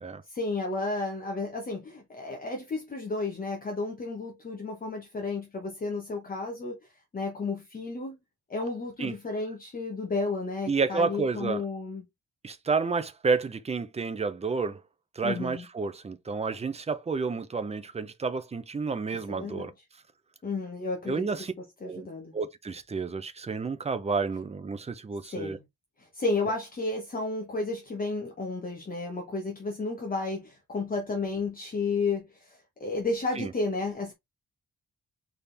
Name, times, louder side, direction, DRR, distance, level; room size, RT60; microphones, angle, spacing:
voice 1, 0.3-8.2 8.5-12.0 15.2-15.6 19.3-19.7 20.4-21.3 21.8-22.3 25.2-25.6 26.0-34.1, left 3 dB, 30° left, 0.9 m, -32 dB
voice 2, 10.7-11.6 12.4-14.8 15.2-19.7 21.1-21.5 21.8-22.1 22.3-25.6 33.4-33.5, right 4 dB, 20° right, 0.5 m, -30 dB
4.3 x 3.5 x 3.3 m
wide cardioid pair, 180°, 31 cm